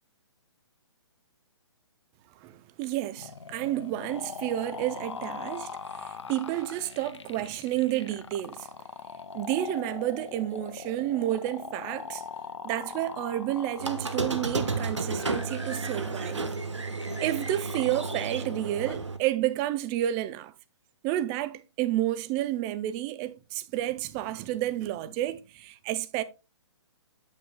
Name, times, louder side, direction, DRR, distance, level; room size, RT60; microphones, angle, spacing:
voice 1, 2.4-8.7 9.3-12.2 12.6-16.5 17.2-20.5 21.0-26.2, right 14 dB, 25° right, 0.5 m, -30 dB
sound 1, 3.2-19.1, left 5 dB, 80° left, 0.7 m, -41 dB
Squeak, 13.8-19.2, right 3 dB, 85° right, 1.2 m, -32 dB
8.7 x 7.6 x 2.3 m
figure-of-eight pair, 135°, 15 cm